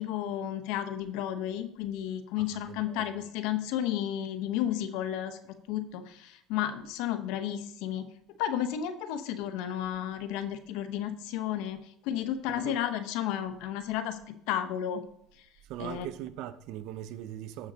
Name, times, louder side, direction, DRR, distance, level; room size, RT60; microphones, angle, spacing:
voice 1, 0.0-8.1 8.4-11.8 12.0-15.0 15.8-16.1, left 11 dB, 75° left, 0.9 m, -32 dB
voice 2, 2.4-3.2 12.5-12.8 15.6-17.7, right 12 dB, 70° right, 0.7 m, -41 dB
16.0 x 6.0 x 2.8 m
supercardioid pair, 85°, 0 cm